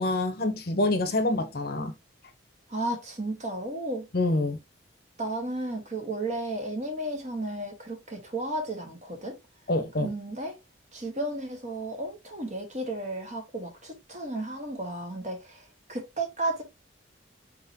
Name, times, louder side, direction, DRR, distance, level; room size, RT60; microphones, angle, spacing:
voice 1, 0.0-1.9 4.1-4.6 9.7-10.1, left 2 dB, 55° left, 0.8 m, -26 dB
voice 2, 2.7-4.1 5.2-9.4 10.0-10.6 10.9-16.6, right 2 dB, 40° right, 1.3 m, -33 dB
4.3 x 3.7 x 2.7 m
head